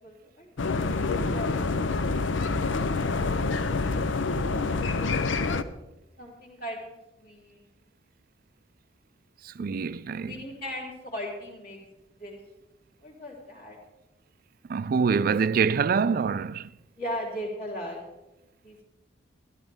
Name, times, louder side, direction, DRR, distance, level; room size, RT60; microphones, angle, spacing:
voice 1, 0.0-5.7 6.2-7.6 10.2-11.8 12.2-12.4 13.0-13.8 17.0-18.0 18.6-18.8, equal, 50° left, 3.8 m, -40 dB
sound 1, 0.6-5.6, left 3 dB, 85° left, 0.7 m, -27 dB
voice 2, 9.4-10.3 14.7-16.7, right 5 dB, 50° right, 0.4 m, -25 dB
15.5 x 13.0 x 3.6 m
head